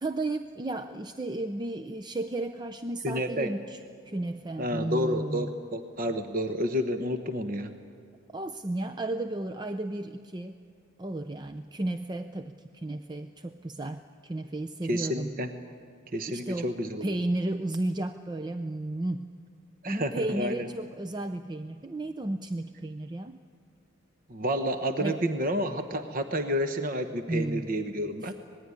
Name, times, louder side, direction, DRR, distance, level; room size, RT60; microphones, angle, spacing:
voice 1, 0.0-3.8 4.1-5.5 8.3-10.6 11.0-15.3 16.3-16.7 17.0-19.3 19.8-23.4 25.0-25.2 27.3-27.6 28.2-28.3, right 2 dB, 20° right, 9 dB, 0.5 m, -33 dB
voice 2, 3.0-3.5 4.6-7.7 14.9-15.5 16.1-17.2 19.8-20.7 24.3-28.3, equal, 40° right, 7 dB, 1.1 m, -30 dB
25.5 x 19.5 x 9.6 m, 2.4 s
head